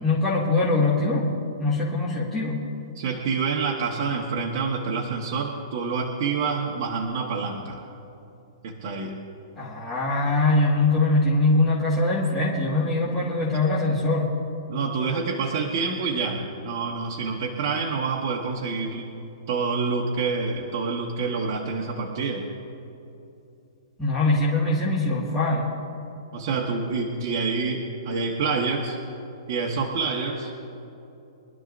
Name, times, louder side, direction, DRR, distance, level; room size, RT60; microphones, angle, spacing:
voice 1, 0.0-1.3 1.6-2.6 9.6-14.3 24.0-25.7, left 2 dB, 5° left, -10 dB, 1.9 m, -22 dB
voice 2, 2.9-7.8 8.6-9.2 14.7-19.1 19.5-22.5 26.3-29.0 29.5-30.5, right 4 dB, 35° right, -2 dB, 1.3 m, -27 dB
24.5 x 12.5 x 2.6 m, 2.8 s
hypercardioid pair, 170°, 3 cm